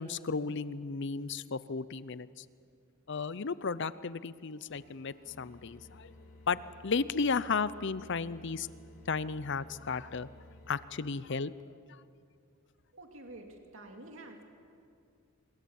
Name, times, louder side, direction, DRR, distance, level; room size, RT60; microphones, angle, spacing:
voice 1, 0.0-2.4 3.1-6.1 6.5-8.7 9.1-10.3 10.7-11.5 11.9-12.0, left 5 dB, 55° left, 16 dB, 0.6 m, -34 dB
sound 1, 4.7-10.8, left 2 dB, 85° left, 3.7 m, -55 dB
voice 2, 12.9-14.4, right 2 dB, 70° right, 3 dB, 2.5 m, -49 dB
25.5 x 22.0 x 7.2 m, 2.3 s
head